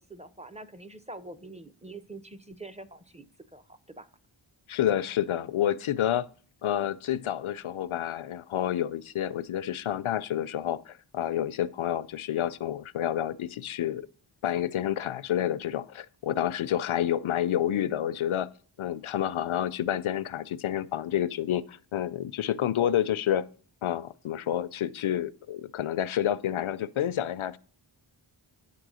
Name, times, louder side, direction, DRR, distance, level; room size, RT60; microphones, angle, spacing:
voice 1, 0.0-3.3 3.5-4.1, right 2 dB, 15° right, 0.5 m, -45 dB
voice 2, 4.7-6.3 6.6-14.1 14.4-18.5 18.8-23.4 23.8-27.6, left 11 dB, 85° left, 0.5 m, -29 dB
9.4 x 3.8 x 6.2 m
wide cardioid pair, 65°, 47 cm